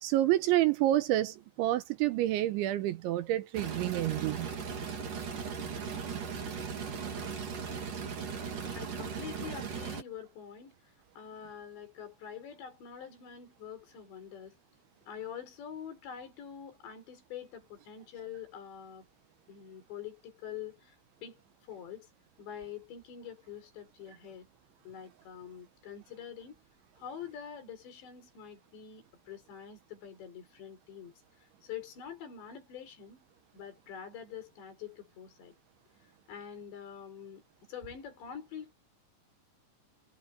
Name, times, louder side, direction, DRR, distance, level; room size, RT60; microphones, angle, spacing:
voice 1, 0.0-4.5, right 14 dB, 75° right, 3.1 m, -28 dB
sound 1, 3.5-10.0, right 6 dB, 45° right, 4.5 m, -38 dB
voice 2, 8.7-14.6 15.1-19.1 19.5-21.0 21.2-21.4 21.7-22.1 22.4-24.5 24.9-26.6 27.0-33.3 33.5-35.6 36.3-38.8, left 8 dB, 60° left, 6.9 m, -45 dB
omnidirectional pair, 5.7 m